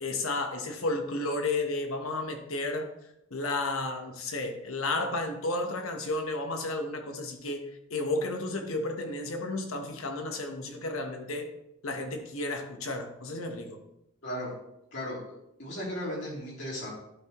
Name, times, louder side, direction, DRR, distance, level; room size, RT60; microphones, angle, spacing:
voice 1, 0.0-2.9 3.3-11.5 11.8-13.8, left 2 dB, 85° left, 4 dB, 1.2 m, -32 dB
voice 2, 15.6-16.9, equal, 55° left, -5 dB, 3.3 m, -35 dB
11.0 x 5.8 x 3.1 m, 0.83 s
head